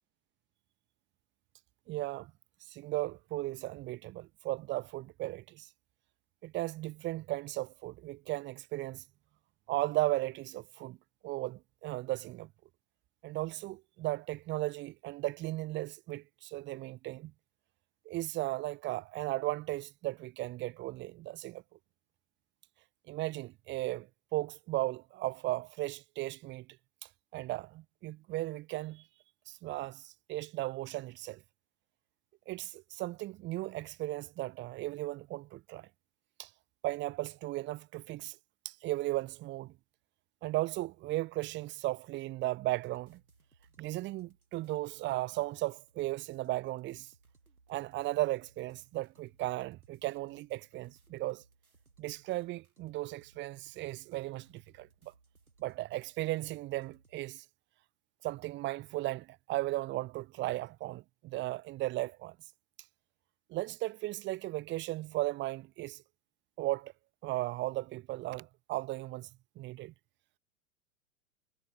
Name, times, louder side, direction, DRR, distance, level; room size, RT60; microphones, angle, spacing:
voice 1, 1.9-2.3 2.7-5.7 6.4-9.0 9.7-11.0 11.2-12.5 13.2-17.3 18.0-21.6 23.1-26.7 27.3-29.0 29.5-31.4 32.5-35.9 36.4-36.5 36.8-38.4 38.6-39.7 40.4-43.2 43.8-47.1 47.7-51.4 52.0-55.1 55.6-57.4 58.2-62.4 63.5-66.0 66.6-66.9 67.2-69.3 69.6-69.9, right 18 dB, 25° right, 1.0 m, -36 dB
sound 1, 42.8-57.3, right 3 dB, 85° right, 7.6 m, -67 dB
figure-of-eight pair, 95°, 42 cm